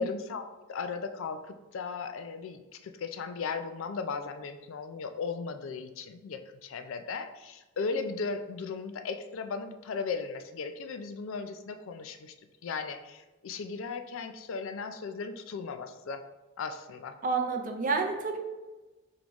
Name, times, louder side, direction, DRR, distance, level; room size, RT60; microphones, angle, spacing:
voice 1, 0.0-12.3 12.6-16.2 16.6-17.2, left 5 dB, 75° left, 8 dB, 0.4 m, -36 dB
voice 2, 17.2-18.4, right 4 dB, 40° right, 4 dB, 0.5 m, -29 dB
3.7 x 3.5 x 3.0 m, 1.2 s
head